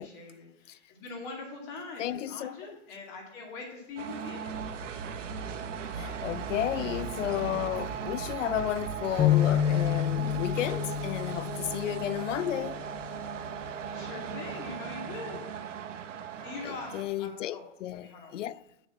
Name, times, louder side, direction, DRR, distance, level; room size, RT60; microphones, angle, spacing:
voice 1, 0.0-4.6 13.9-15.4 16.4-17.6 17.9-18.3, left 3 dB, 45° left, 2.4 m, -42 dB
voice 2, 2.0-2.5 6.0-12.8 16.6-18.6, left 12 dB, 85° left, 0.6 m, -33 dB
sound 1, 4.0-17.0, right 8 dB, 85° right, 1.1 m, -38 dB
sound 2, 4.5-14.4, right 4 dB, 50° right, 1.1 m, -42 dB
sound 3, 9.2-12.7, left 11 dB, 10° left, 0.5 m, -28 dB
6.7 x 6.5 x 7.1 m
hypercardioid pair, 140°, 36 cm